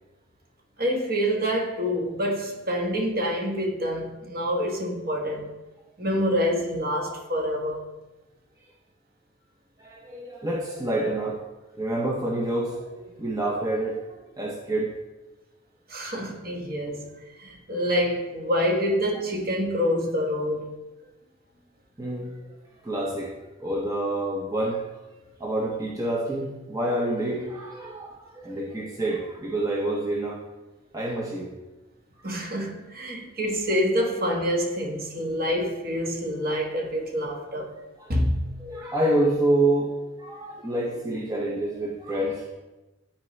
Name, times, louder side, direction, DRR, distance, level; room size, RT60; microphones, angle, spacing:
voice 1, 0.8-5.5 6.0-7.8 15.9-17.1 17.4-20.7 32.2-37.8 38.1-38.6, equal, 50° right, 1.4 m, -27 dB
voice 2, 9.8-11.4 11.7-14.9 22.0-22.6 22.8-23.3 23.6-24.8 25.4-30.4 30.9-31.5 32.2-32.3 38.0-38.1 38.6-39.9 40.2-42.5, right 1 dB, 20° right, 0.8 m, -27 dB
12.0 x 4.3 x 3.2 m
head